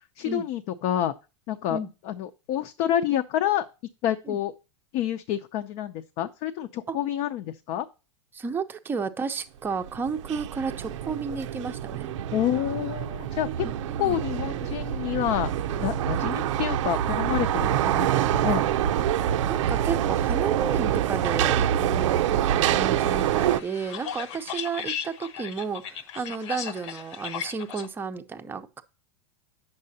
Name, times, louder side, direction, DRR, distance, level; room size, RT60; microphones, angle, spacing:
voice 1, 0.2-1.1 1.5-1.8 2.1-3.7 4.0-4.5 4.9-7.8 12.3-13.7 14.0-15.5 15.8-18.6 22.7-22.9, left 11 dB, 45° left, 0.6 m, -28 dB
voice 2, 8.3-12.2 13.9-14.2 17.6-17.7 19.5-28.8, right 5 dB, 15° right, 0.6 m, -32 dB
sound 1, 9.7-23.6, right 11 dB, 80° right, 0.6 m, -26 dB
sound 2, 22.5-27.9, left 8 dB, 70° left, 1.1 m, -37 dB
9.5 x 6.7 x 2.8 m
supercardioid pair, 145°, 16 cm